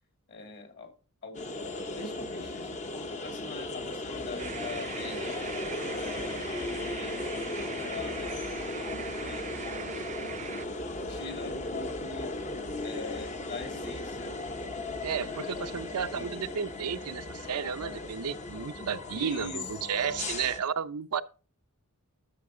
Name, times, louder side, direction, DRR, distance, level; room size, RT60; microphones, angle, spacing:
voice 1, 0.3-0.9 1.2-1.6 2.0-5.3 5.9-8.4 8.8-10.6 11.1-12.4 12.8-14.3 15.8-16.3 19.1-20.2, left 3 dB, 50° left, 2.8 m, -43 dB
sound 1, 1.3-20.6, left 2 dB, 35° left, 0.8 m, -36 dB
sound 2, 4.4-10.7, right 7 dB, 35° right, 0.4 m, -41 dB
voice 2, 15.0-21.2, right 7 dB, 80° right, 0.6 m, -33 dB
11.5 x 6.9 x 3.8 m
head